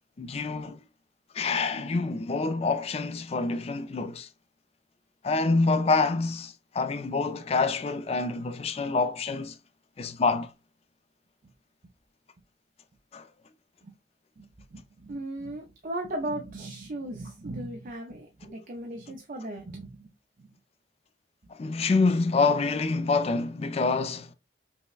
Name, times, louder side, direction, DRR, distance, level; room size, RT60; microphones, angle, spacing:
voice 1, 0.2-0.8 1.3-4.3 5.2-9.5 10.0-10.5 13.1-13.3 21.5-24.3, left 3 dB, 35° left, 0.4 m, -26 dB
voice 2, 14.4-20.1 20.4-20.5, right 1 dB, 50° right, 0.5 m, -37 dB
5.4 x 2.1 x 2.4 m
head